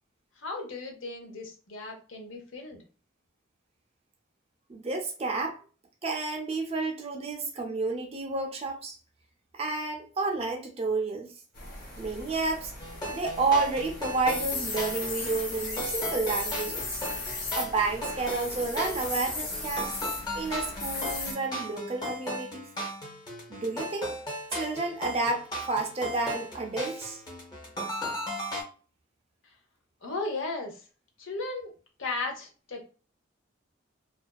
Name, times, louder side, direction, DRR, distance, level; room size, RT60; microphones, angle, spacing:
voice 1, 0.4-2.8 30.0-30.8 31.2-31.7 32.0-32.8, left 3 dB, 70° left, 0.7 m, -35 dB
voice 2, 4.7-5.6 6.0-9.0 9.5-11.3 12.0-12.7 13.1-17.0 17.5-19.9 20.3-22.7 23.5-24.1 24.5-27.2, right 3 dB, 30° right, 0.4 m, -30 dB
sound 1, 11.5-21.3, left 3 dB, 50° left, 1.1 m, -36 dB
sound 2, 12.8-28.6, equal, 20° left, 0.7 m, -37 dB
2.5 x 2.2 x 2.3 m
head